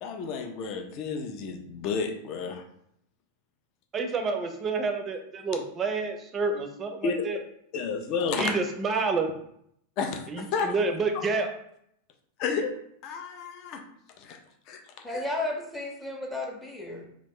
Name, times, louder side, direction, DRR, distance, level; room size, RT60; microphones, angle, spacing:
voice 1, 0.0-2.6 7.0-7.2 7.7-8.5 10.0-10.7 12.4-12.7 13.0-13.8 14.2-14.4 14.7-14.8 15.1-15.2, left 5 dB, 40° left, 4 dB, 0.5 m, -31 dB
voice 2, 3.9-7.4 8.3-9.3 10.3-11.5, right 4 dB, 25° right, 5 dB, 0.5 m, -29 dB
voice 3, 15.0-17.1, left 2 dB, 5° left, -1 dB, 0.8 m, -33 dB
2.9 x 2.4 x 3.5 m, 0.72 s
figure-of-eight pair, 90°, 0 cm